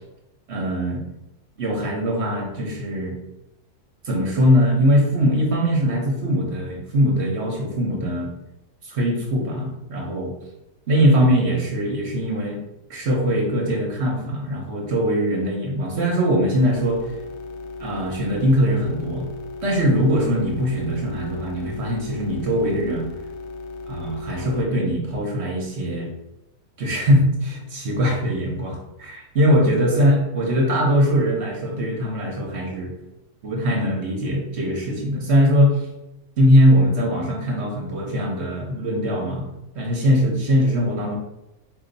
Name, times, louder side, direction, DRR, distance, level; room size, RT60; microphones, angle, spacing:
voice 1, 0.5-1.0 1.6-3.2 4.0-8.3 8.8-10.3 10.9-12.6 12.9-17.0 17.8-19.3 19.6-23.1 23.9-26.1 26.8-32.9 33.4-35.9 36.4-39.5 39.7-41.2, equal, 50° right, 0 dB, 0.9 m, -21 dB
sound 1, 16.7-24.6, left 3 dB, 70° left, 1.0 m, -36 dB
4.4 x 2.7 x 3.9 m, 0.93 s
omnidirectional pair, 1.8 m